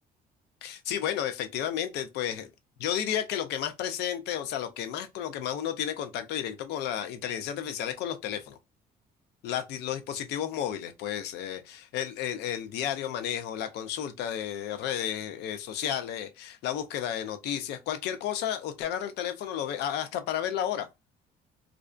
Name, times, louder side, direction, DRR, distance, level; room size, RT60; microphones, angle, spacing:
voice 1, 0.6-2.5 2.8-8.6 9.4-20.9, left 10 dB, 80° left, 0.5 m, -32 dB
2.4 x 2.1 x 2.4 m
cardioid pair, 110°, 17 cm